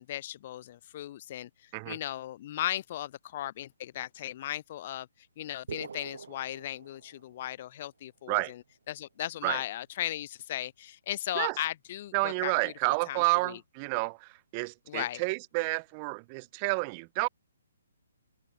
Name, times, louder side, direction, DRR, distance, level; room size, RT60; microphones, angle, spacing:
voice 1, 0.0-5.1 5.4-8.4 8.9-12.7 13.1-13.2 14.9-15.2, left 13 dB, 40° left, 1.1 m, -36 dB
sound 1, 5.7-7.6, right 6 dB, 65° right, 6.8 m, -44 dB
voice 2, 12.1-17.3, right 32 dB, 30° right, 3.7 m, -30 dB
figure-of-eight pair, 135°, 0 cm